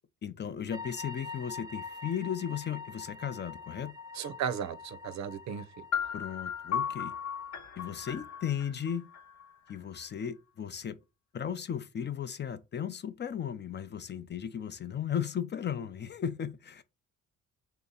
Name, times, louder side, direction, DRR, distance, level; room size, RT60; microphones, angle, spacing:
voice 1, 0.2-3.9 6.1-7.1 7.8-9.1 9.7-11.0 11.3-16.8, left 8 dB, 35° left, 0.5 m, -36 dB
sound 1, 0.7-7.6, left 4 dB, 15° right, 0.7 m, -45 dB
voice 2, 4.2-5.8, right 8 dB, 65° right, 0.6 m, -35 dB
sound 2, 5.9-9.8, left 7 dB, 65° left, 0.9 m, -36 dB
3.4 x 2.7 x 3.8 m
cardioid pair, 90°, 30 cm